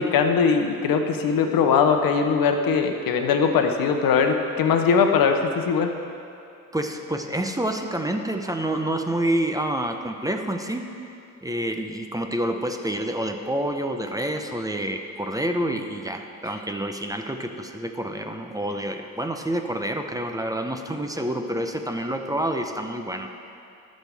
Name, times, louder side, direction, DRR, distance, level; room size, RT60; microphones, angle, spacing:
voice 1, 0.0-5.9, left 6 dB, 85° left, 5 dB, 0.9 m, -21 dB
voice 2, 6.7-10.9 11.4-23.3, right 1 dB, 10° right, 5 dB, 0.8 m, -28 dB
19.0 x 6.4 x 3.5 m, 2.6 s
cardioid pair, 85°, 34 cm